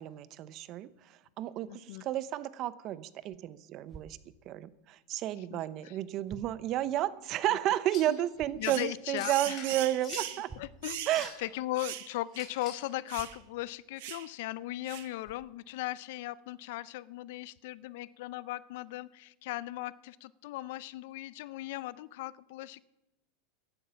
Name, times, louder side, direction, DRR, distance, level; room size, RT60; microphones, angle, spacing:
voice 1, 0.0-4.2 4.5-10.5 11.1-11.3, right 13 dB, 40° right, 17 dB, 0.7 m, -32 dB
voice 2, 1.7-2.1 5.5-5.6 5.8-6.0 8.1-8.2 8.6-9.6 10.6-11.1 11.4-22.8, left 16 dB, 65° left, 20 dB, 0.5 m, -38 dB
sound 1, 3.9-4.1 5.5-5.6 6.2-6.6 8.3-8.7 10.5-10.9 13.1-13.4 14.5-14.6 15.2-15.5, right 4 dB, 20° right, 1.2 m, -50 dB
sound 2, 7.9-8.2 9.1-10.4 10.9-11.5 12.3-12.9, left 5 dB, 30° left, 4.6 m, -46 dB
sound 3, 8.6-8.9 9.2-10.4 10.8-11.2 11.8-12.1 12.3-12.5 13.1-13.4 14.0-14.3 14.9-15.1, right 14 dB, 65° right, 1.1 m, -40 dB
15.0 x 11.0 x 5.7 m, 1.0 s
supercardioid pair, 145°, 0 cm